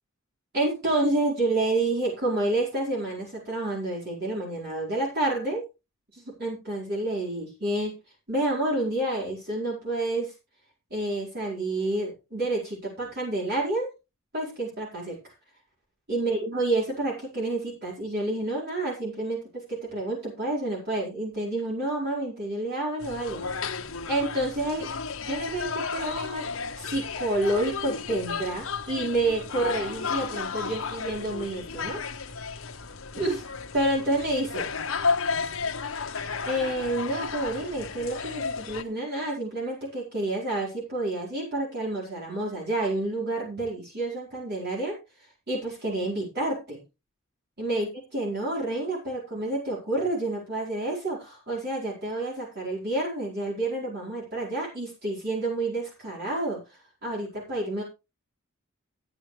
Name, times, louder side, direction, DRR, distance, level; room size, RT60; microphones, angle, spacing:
voice 1, 0.5-5.6 6.1-7.9 8.3-10.3 10.9-13.9 14.3-15.3 16.1-23.4 24.1-24.9 25.2-26.5 26.8-32.0 33.1-33.4 33.7-34.7 35.8-45.0 45.5-46.8 47.6-56.6 57.0-57.8, right 2 dB, 55° right, -4 dB, 4.7 m, -29 dB
sound 1, 23.0-38.8, left 5 dB, 85° left, 1.1 m, -33 dB
14.5 x 9.2 x 3.3 m, 0.27 s
head